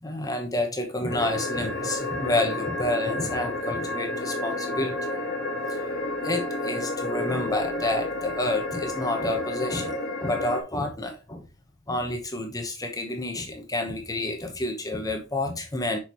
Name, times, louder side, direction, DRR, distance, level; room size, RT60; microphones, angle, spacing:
voice 1, 0.0-5.0 5.7-5.8 6.2-11.4 11.9-16.0, left 1 dB, 20° left, 1.0 m, -29 dB
sound 1, 1.1-10.6, left 2 dB, 55° left, 1.4 m, -31 dB
6.4 x 5.1 x 3.0 m
head